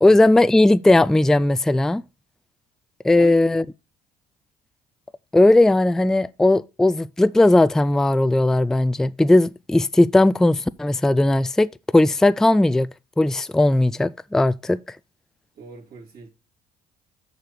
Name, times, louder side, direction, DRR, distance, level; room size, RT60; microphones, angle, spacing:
voice 1, 0.0-2.0 3.0-3.6 5.3-11.7 11.9-12.9 13.2-14.8, left 2 dB, 5° left, 0.3 m, -17 dB
voice 2, 15.6-16.3, right 4 dB, 55° right, 3.1 m, -40 dB
6.6 x 4.9 x 6.8 m
supercardioid pair, 70°, 19 cm